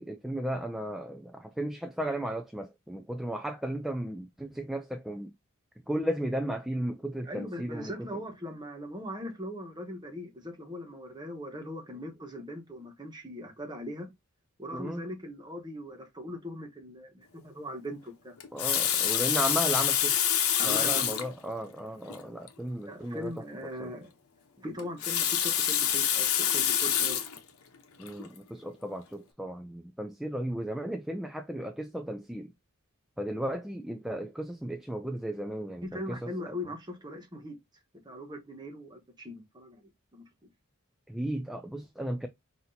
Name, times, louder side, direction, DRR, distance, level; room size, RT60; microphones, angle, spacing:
voice 1, 0.0-5.3 5.9-7.9 14.7-15.1 18.5-20.1 20.6-23.3 23.8-23.9 28.0-32.5 33.2-36.3 41.1-42.3, right 1 dB, ahead, 0.3 m, -35 dB
voice 2, 7.2-14.1 14.6-18.4 20.6-21.1 22.9-24.1 24.6-27.2 35.8-37.6 38.0-40.2, equal, 20° right, 1.1 m, -40 dB
Water tap faucet, 18.4-21.3 22.1-22.2 22.5-22.6 24.8-27.4 28.1-28.3, left 9 dB, 85° left, 0.9 m, -26 dB
5.8 x 2.7 x 2.7 m
head